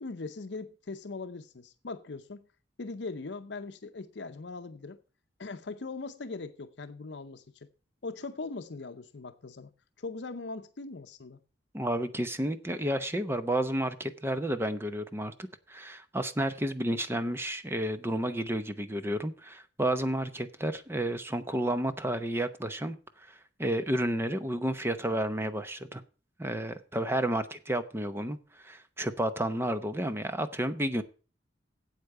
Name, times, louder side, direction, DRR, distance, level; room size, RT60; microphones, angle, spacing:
voice 1, 0.0-2.5 2.8-5.0 5.4-7.7 8.0-9.7 10.0-11.4, left 3 dB, 65° left, 0.7 m, -40 dB
voice 2, 11.7-23.0 23.3-26.0 26.4-31.0, right 1 dB, 15° right, 0.8 m, -31 dB
8.3 x 8.2 x 6.6 m
head